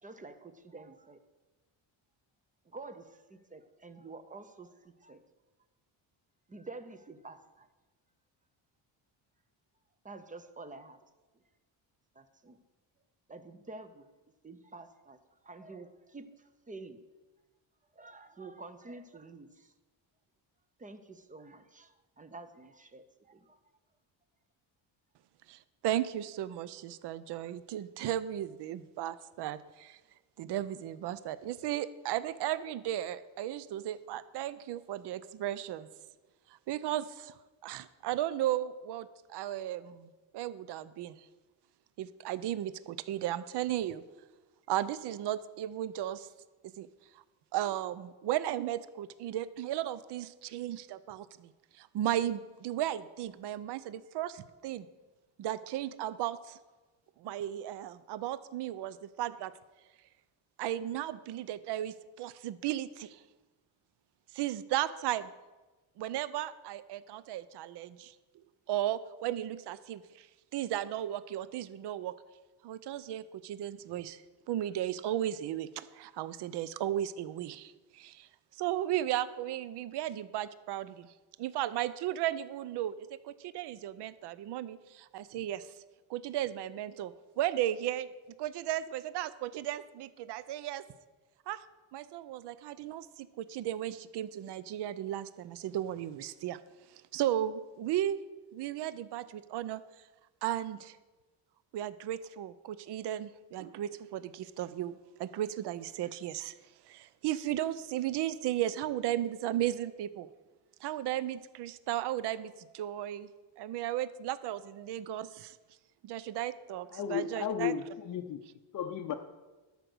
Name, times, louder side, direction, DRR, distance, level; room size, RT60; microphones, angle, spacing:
voice 1, 0.0-1.2 2.7-5.2 6.5-7.7 10.0-11.0 12.1-12.6 13.3-14.1 14.4-15.2 15.4-17.0 17.9-19.7 20.8-23.6, right 3 dB, 15° right, 10 dB, 0.5 m, -49 dB
voice 2, 25.5-30.0 30.4-35.9 36.7-37.3 37.6-41.2 42.0-44.0 44.7-46.3 46.8-46.9 47.5-51.5 51.8-54.9 55.4-56.6 57.2-59.5 60.6-63.2 64.3-65.3 66.0-68.1 68.7-70.3 70.5-72.2 72.6-74.2 74.5-78.3 78.6-81.1 81.4-85.7 86.1-88.1 88.4-90.8 91.5-91.6 91.9-96.6 97.1-98.2 98.5-99.8 100.4-101.0 101.7-106.5 106.9-110.3 110.8-113.3 113.6-115.6 116.0-117.7, right 12 dB, 60° right, 16 dB, 0.6 m, -35 dB
voice 3, 116.9-118.4 118.7-119.1, left 9 dB, 40° left, 5 dB, 0.5 m, -34 dB
12.5 x 5.3 x 6.1 m, 1.2 s
cardioid pair, 135°, 47 cm